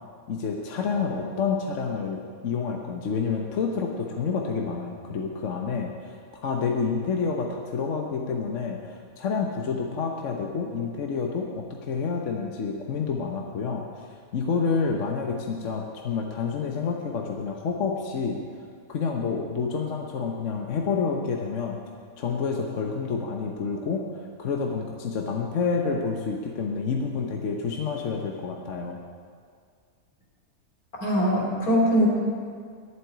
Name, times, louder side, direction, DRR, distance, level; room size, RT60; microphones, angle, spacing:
voice 1, 0.3-6.2 6.4-14.1 14.3-18.4 18.9-21.8 22.2-29.0, left 5 dB, 60° left, 2 dB, 1.3 m, -28 dB
voice 2, 31.0-32.1, equal, 85° left, -3 dB, 3.5 m, -21 dB
11.0 x 7.9 x 9.3 m, 2.1 s
omnidirectional pair, 1.5 m